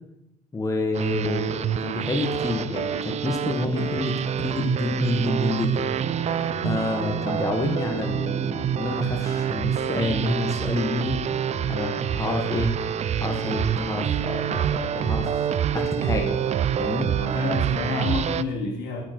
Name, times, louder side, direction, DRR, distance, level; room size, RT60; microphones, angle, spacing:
voice 1, 0.5-5.9 6.6-11.2 11.7-12.7 13.2-15.5 15.7-16.4 16.8-17.1, left 2 dB, 20° left, 2 dB, 1.4 m, -28 dB
sound 1, 0.9-18.4, right 9 dB, 40° right, 0.4 m, -27 dB
sound 2, 1.1-17.1, left 6 dB, 40° left, 0.8 m, -44 dB
voice 2, 17.2-19.0, left 3 dB, 80° left, -1 dB, 3.2 m, -28 dB
10.0 x 8.6 x 4.5 m, 0.85 s
cardioid pair, 110°, 17 cm